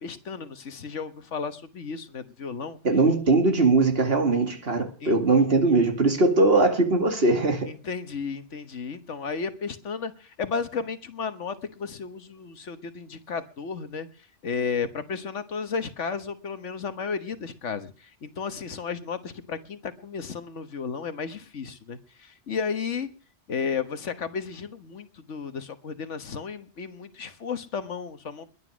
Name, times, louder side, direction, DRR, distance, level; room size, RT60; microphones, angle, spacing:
voice 1, 0.0-2.8 5.0-5.1 7.7-14.1 14.4-23.1 23.5-28.5, left 5 dB, 85° left, 1.6 m, -33 dB
voice 2, 2.8-7.7, right 3 dB, 55° right, 2.5 m, -21 dB
21.0 x 9.9 x 6.3 m
omnidirectional pair, 1.2 m